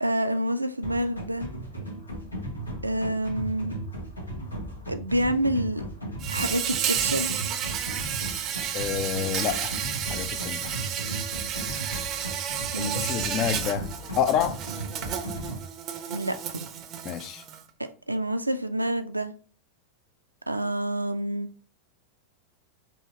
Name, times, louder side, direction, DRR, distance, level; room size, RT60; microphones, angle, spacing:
voice 1, 0.0-1.5 2.8-3.7 4.9-5.8 6.3-7.3 12.7-13.0 16.1-16.7 18.1-19.3 20.5-21.5, right 1 dB, 85° right, 0.4 m, -27 dB
sound 1, 0.8-15.6, right 1 dB, 80° left, 1.0 m, -36 dB
Insect, 6.2-17.6, right 9 dB, 35° right, 0.5 m, -32 dB
voice 2, 8.7-9.8 10.1-10.8 12.8-13.9 14.1-14.6 17.0-17.4, left 9 dB, 35° left, 0.5 m, -28 dB
4.8 x 2.9 x 2.7 m
figure-of-eight pair, 90°, 0 cm